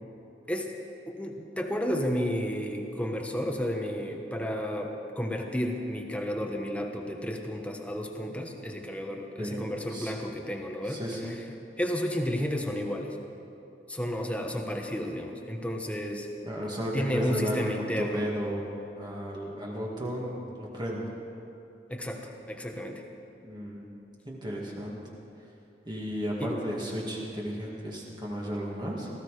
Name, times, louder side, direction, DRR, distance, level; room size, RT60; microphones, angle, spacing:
voice 1, 1.1-11.0 11.8-13.2 13.9-16.3 16.9-18.2 21.9-23.0 26.4-26.5, equal, 10° left, 2 dB, 1.3 m, -32 dB
voice 2, 9.4-10.1 10.8-11.4 16.5-18.7 19.0-21.0 23.4-23.9 24.3-25.0 25.9-29.1, equal, 25° right, -3 dB, 2.2 m, -34 dB
18.0 x 15.0 x 5.0 m, 2.7 s
head